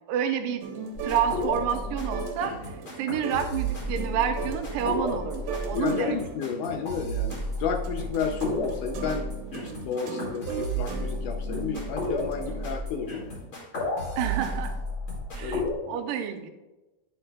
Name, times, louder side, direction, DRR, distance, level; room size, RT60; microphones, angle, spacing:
voice 1, 0.1-0.6 1.0-2.5 3.0-6.2 14.2-14.8 15.4-15.6 15.9-16.5, right 8 dB, 85° right, 7 dB, 2.3 m, -29 dB
sound 1, 0.6-12.7, right 5 dB, 70° right, 2.1 m, -39 dB
sound 2, 1.0-15.7, equal, 40° left, 2.4 m, -33 dB
voice 2, 5.7-9.3 9.6-13.5 15.4-16.0, left 6 dB, 80° left, 4 dB, 1.9 m, -32 dB
10.0 x 7.7 x 2.2 m, 1.1 s
omnidirectional pair, 3.9 m